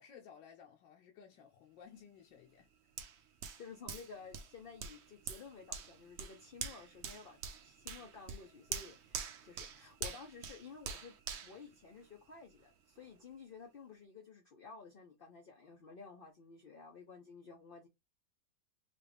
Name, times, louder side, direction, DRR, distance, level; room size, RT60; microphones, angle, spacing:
voice 1, 0.0-2.9, left 7 dB, 85° left, 1.4 m, -57 dB
Hands, 3.0-12.5 13.0-13.1, right 6 dB, 75° right, 0.6 m, -46 dB
voice 2, 3.6-11.1 11.4-17.9, left 5 dB, 50° left, 0.6 m, -53 dB
3.9 x 2.4 x 3.4 m
omnidirectional pair, 1.9 m